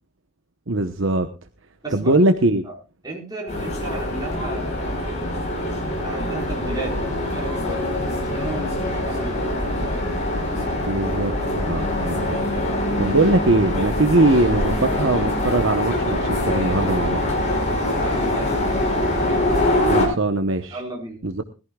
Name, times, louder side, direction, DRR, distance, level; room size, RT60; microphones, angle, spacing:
voice 1, 0.7-1.3 1.9-2.6 10.8-12.4 13.0-17.2 19.9-20.8 21.2-21.4, right 2 dB, 55° right, 8 dB, 1.0 m, -21 dB
voice 2, 1.8-2.2 2.6-2.7 3.0-5.2 6.0-10.0 18.0-18.5 20.0-20.2 20.7-21.2, right 1 dB, 20° right, -1 dB, 5.1 m, -34 dB
sound 1, 3.5-20.1, left 1 dB, 30° left, 5.5 m, -24 dB
21.0 x 14.5 x 2.4 m, 0.30 s
head